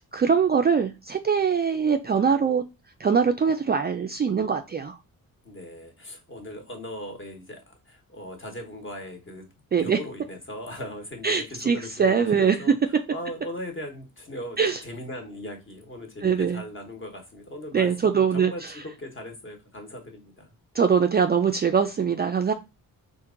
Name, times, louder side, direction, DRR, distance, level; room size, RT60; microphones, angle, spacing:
voice 1, 0.1-2.6 3.0-5.0 9.7-10.0 11.2-12.6 14.6-14.8 16.2-16.6 17.7-18.5 20.8-22.5, right 6 dB, 30° right, 0.4 m, -22 dB
voice 2, 5.4-9.5 9.8-20.5, left 1 dB, 35° left, 1.3 m, -39 dB
4.4 x 2.5 x 3.7 m
cardioid pair, 115°, 35 cm